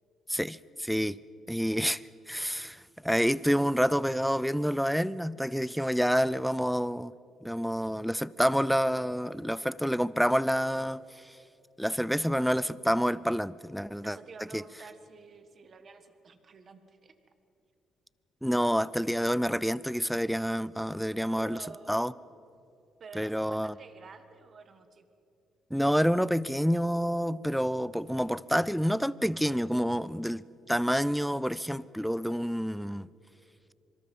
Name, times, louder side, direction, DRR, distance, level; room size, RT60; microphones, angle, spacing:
voice 1, 0.3-1.2 1.5-7.1 7.4-11.3 11.8-14.2 14.5-14.6 18.4-21.6 21.9-22.1 23.2-23.7 25.7-33.1, equal, ahead, 0.5 m, -28 dB
voice 2, 14.0-17.1 21.4-22.1 23.0-25.0, right 4 dB, 40° right, 1.5 m, -49 dB
25.5 x 24.5 x 5.4 m
cardioid pair, 135°, 0 cm